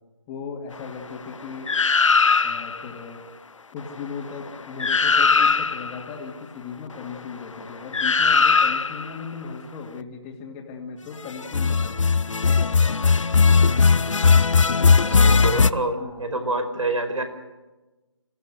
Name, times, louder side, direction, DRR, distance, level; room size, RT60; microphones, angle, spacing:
voice 1, 0.3-1.7 2.4-3.2 3.7-12.0 12.4-13.0 14.8-15.2 16.0-16.3, left 5 dB, 15° left, 1 dB, 2.4 m, -37 dB
sound 1, 1.7-2.8 4.5-4.6 4.8-6.0 7.9-9.1 11.4-15.7, left 5 dB, 75° left, 0.8 m, -18 dB
voice 2, 15.2-17.2, right 2 dB, 85° right, 8 dB, 5.1 m, -27 dB
27.0 x 16.0 x 8.0 m, 1.1 s
figure-of-eight pair, 165°, 16 cm